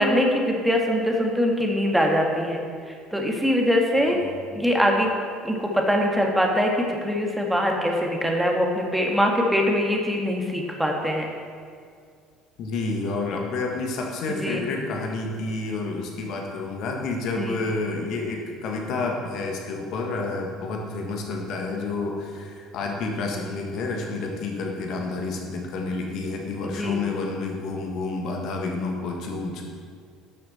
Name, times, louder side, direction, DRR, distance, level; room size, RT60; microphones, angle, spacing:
voice 1, 0.0-2.6 3.1-4.2 4.5-5.1 5.4-11.3 14.4-14.6 17.4-17.5 26.8-27.0, equal, 5° right, 0 dB, 1.7 m, -22 dB
voice 2, 4.1-4.5 12.6-29.6, left 3 dB, 60° left, 1 dB, 1.7 m, -29 dB
11.5 x 6.4 x 4.4 m, 2.2 s
hypercardioid pair, 65°, 0 cm